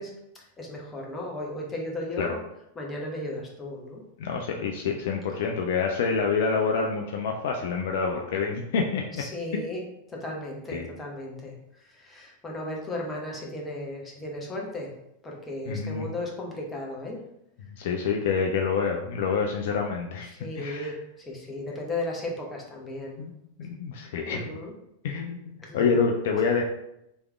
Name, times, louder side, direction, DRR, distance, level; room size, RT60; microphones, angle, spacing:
voice 1, 0.0-2.4 2.7-4.0 9.2-9.8 10.1-11.5 11.8-14.9 15.2-17.2 20.3-23.2 24.2-24.7 25.6-26.0, left 1 dB, 15° left, -2 dB, 0.9 m, -35 dB
voice 2, 4.2-9.0 10.7-10.9 15.7-16.1 17.8-20.9 23.2-23.3 23.6-24.4 25.0-25.4 25.7-26.6, left 5 dB, 55° left, 2 dB, 0.4 m, -27 dB
3.4 x 3.1 x 3.4 m, 0.81 s
figure-of-eight pair, 90°, 0 cm